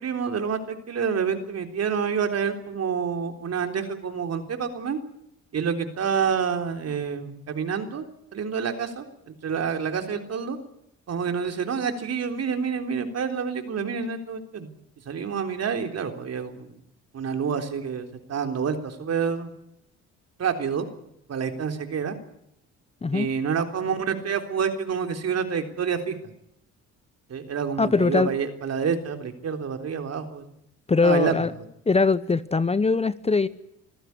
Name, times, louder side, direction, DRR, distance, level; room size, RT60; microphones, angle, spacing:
voice 1, 0.0-5.0 5.5-8.0 8.3-10.6 11.1-14.7 15.1-16.7 17.1-19.5 20.4-20.9 21.3-22.2 23.1-26.2 27.3-30.5 31.0-31.5, right 6 dB, 55° right, 6 dB, 3.7 m, -28 dB
voice 2, 27.8-28.3 30.9-31.5 31.9-33.5, left 4 dB, 20° left, 15 dB, 0.9 m, -21 dB
26.0 x 15.0 x 9.7 m, 0.79 s
cardioid pair, 90°, 30 cm